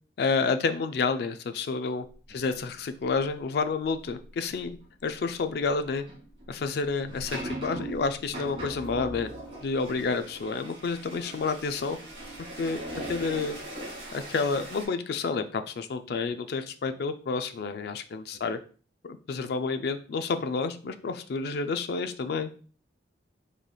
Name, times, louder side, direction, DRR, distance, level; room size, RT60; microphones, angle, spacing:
voice 1, 0.2-4.8 5.0-6.0 6.5-9.3 9.6-12.0 12.6-12.8 13.1-13.6 14.1-18.6 19.0-22.5, left 4 dB, 55° left, 9 dB, 0.3 m, -29 dB
voice 2, 2.4-2.5 9.9-10.2 13.0-13.1 16.1-16.3 16.9-17.0 18.3-18.4, right 1 dB, 85° right, 1 dB, 0.9 m, -49 dB
sound 1, 4.0-4.2 4.6-4.9 6.0-14.8, right 1 dB, 30° right, 1.6 m, -40 dB
4.0 x 3.1 x 2.3 m, 0.40 s
head